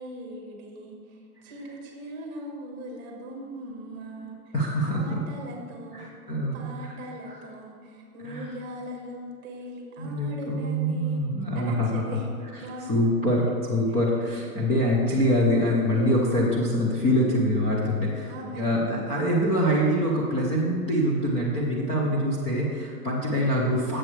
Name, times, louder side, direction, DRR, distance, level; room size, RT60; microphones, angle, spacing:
voice 1, 0.0-4.5 4.8-6.3 6.5-12.3 12.6-13.2 13.9-14.0 18.3-18.7, equal, 25° right, 0 dB, 1.5 m, -40 dB
voice 2, 4.5-5.2 5.9-6.9 8.2-8.5 10.0-12.2 12.9-24.0, equal, 15° left, -5 dB, 0.8 m, -25 dB
11.5 x 7.7 x 3.3 m, 2.3 s
hypercardioid pair, 150°, 46 cm